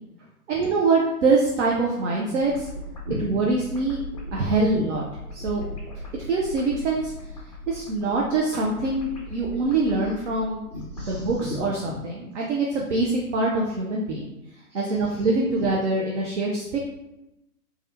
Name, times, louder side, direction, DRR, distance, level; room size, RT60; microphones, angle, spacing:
voice 1, 0.5-2.7 3.2-4.0 4.3-5.0 5.3-5.6 6.2-7.1 7.7-10.6 11.1-14.3 14.7-16.8, right 3 dB, 50° right, -2 dB, 0.6 m, -24 dB
sound 1, 2.3-11.4, left 1 dB, 25° left, 0.4 m, -39 dB
voice 2, 10.7-12.0 14.7-15.2 15.6-15.7, equal, 25° right, -8 dB, 1.5 m, -35 dB
3.3 x 2.4 x 2.7 m, 0.93 s
figure-of-eight pair, 130°, 46 cm